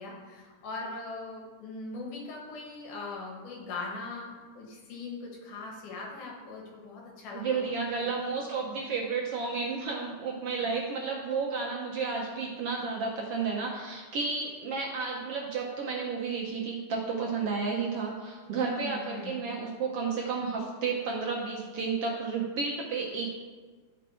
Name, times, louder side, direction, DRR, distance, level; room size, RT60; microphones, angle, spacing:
voice 1, 0.0-8.1 18.5-19.4, left 3 dB, 80° left, -2 dB, 3.1 m, -40 dB
voice 2, 7.3-23.3, right 4 dB, 65° right, -2 dB, 1.5 m, -32 dB
12.0 x 5.4 x 4.3 m, 1.5 s
omnidirectional pair, 3.5 m